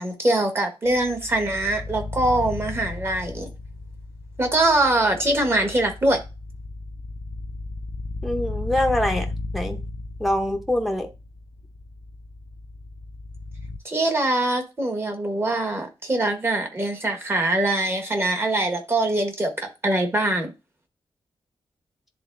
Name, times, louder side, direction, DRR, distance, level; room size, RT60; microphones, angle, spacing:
voice 1, 0.0-3.5 4.4-6.2 13.8-20.5, right 2 dB, 25° right, 1.2 m, -23 dB
sound 1, 0.9-13.8, left 3 dB, 50° left, 0.4 m, -35 dB
voice 2, 8.2-9.3 9.5-9.8 10.2-11.1, left 1 dB, ahead, 0.7 m, -24 dB
10.5 x 3.8 x 2.5 m
wide cardioid pair, 175°, 10 cm